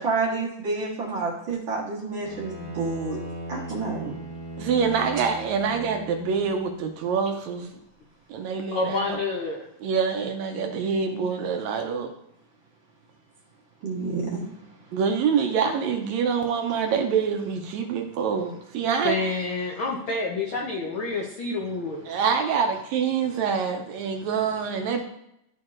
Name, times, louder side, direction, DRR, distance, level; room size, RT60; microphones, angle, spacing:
voice 1, 0.0-3.2 3.5-4.2 13.8-14.4, right 4 dB, 50° right, -4 dB, 1.6 m, -29 dB
Bowed string instrument, 2.2-6.7, right 1 dB, 30° left, 2.3 m, -38 dB
voice 2, 4.6-7.7 8.3-9.2 9.8-12.1 14.9-19.2 22.1-25.0, right 6 dB, 75° right, 4 dB, 1.8 m, -26 dB
voice 3, 8.7-9.7 19.0-22.1, left 3 dB, 80° left, -1 dB, 1.1 m, -28 dB
12.5 x 4.5 x 2.5 m, 0.78 s
omnidirectional pair, 3.5 m